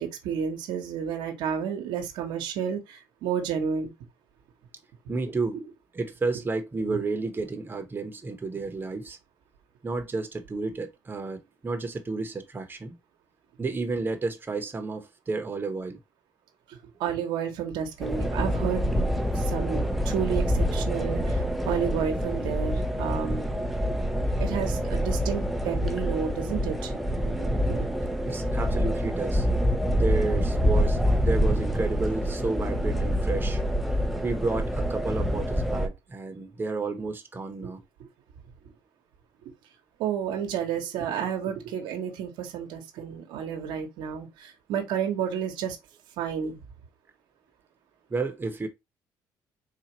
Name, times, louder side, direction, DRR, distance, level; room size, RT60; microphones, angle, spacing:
voice 1, 0.0-3.9 17.0-23.5 24.4-27.9 37.6-37.7 40.0-45.8 46.2-46.6, right 7 dB, 85° right, 1.0 m, -31 dB
voice 2, 5.1-5.6 5.9-9.2 9.8-13.0 13.6-16.0 28.3-29.5 29.9-33.6 34.2-37.8 48.1-48.7, right 3 dB, 25° right, 0.9 m, -31 dB
sound 1, 18.0-35.9, equal, ahead, 0.6 m, -26 dB
4.0 x 2.5 x 2.9 m
supercardioid pair, 85°, 8 cm